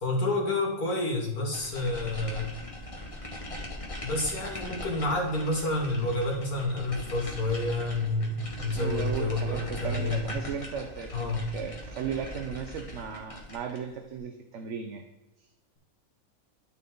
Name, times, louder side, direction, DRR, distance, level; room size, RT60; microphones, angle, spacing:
voice 1, 0.0-2.5 4.0-10.3 11.1-11.5, left 2 dB, 80° left, -1 dB, 2.6 m, -29 dB
sound 1, 1.5-13.9, left 1 dB, 25° left, 1.4 m, -40 dB
voice 2, 8.7-15.0, right 7 dB, 60° right, 5 dB, 0.9 m, -36 dB
12.5 x 4.2 x 3.7 m, 1.0 s
omnidirectional pair, 1.6 m